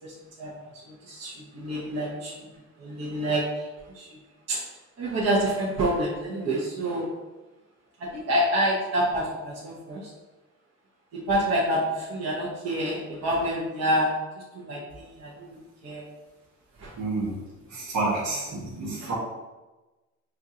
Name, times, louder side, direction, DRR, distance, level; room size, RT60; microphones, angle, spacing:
voice 1, 0.0-0.6 0.8-2.5 2.8-4.1 4.5-4.6 5.0-7.1 8.0-10.1 11.3-14.1 14.5-16.0 16.8-16.9 19.0-19.1, right 1 dB, 55° right, -5 dB, 1.0 m, -28 dB
voice 2, 17.0-17.4 17.7-19.1, right 3 dB, 75° right, -4 dB, 1.4 m, -29 dB
5.6 x 2.5 x 2.8 m, 1.1 s
cardioid pair, 90°, 30 cm